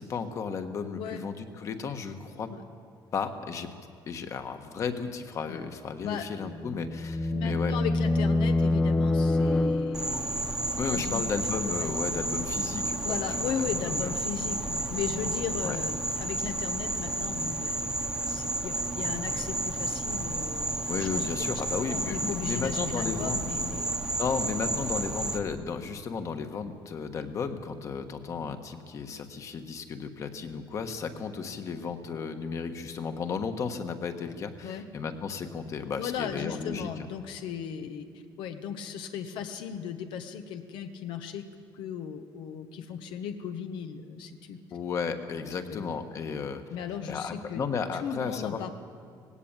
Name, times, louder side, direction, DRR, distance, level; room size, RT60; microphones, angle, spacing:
voice 1, 0.0-2.5 3.1-3.7 4.1-7.8 10.8-14.1 15.6-15.8 20.9-23.4 24.2-36.9 44.7-46.6 47.1-48.7, left 5 dB, 40° left, 7 dB, 1.4 m, -34 dB
voice 2, 0.9-1.3 2.5-2.6 5.5-5.6 6.0-6.3 7.3-11.5 11.7-11.9 13.0-18.0 18.3-21.5 21.9-23.9 34.6-34.9 36.0-38.1 38.4-41.4 41.7-44.6 45.7-45.8 46.7-47.6 48.0-48.7, left 8 dB, 85° left, 7 dB, 1.2 m, -37 dB
sound 1, 6.4-10.4, left 2 dB, 10° left, 0.6 m, -26 dB
Insect, 9.9-25.4, right 2 dB, 10° right, 1.1 m, -31 dB
19.0 x 17.0 x 8.9 m, 2.2 s
cardioid pair, 160°, 8 cm